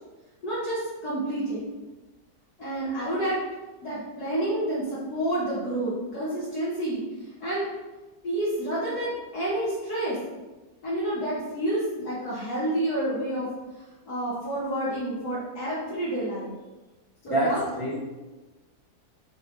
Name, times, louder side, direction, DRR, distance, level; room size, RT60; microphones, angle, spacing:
voice 1, 0.4-1.6 2.6-3.4 3.8-7.7 8.2-10.2 10.8-13.5 13.7-16.5 17.2-17.6, right 1 dB, 60° left, -9 dB, 1.7 m, -29 dB
voice 2, 17.3-18.0, right 1 dB, 55° right, -4 dB, 0.3 m, -26 dB
7.2 x 4.2 x 3.1 m, 1.2 s
omnidirectional pair, 1.9 m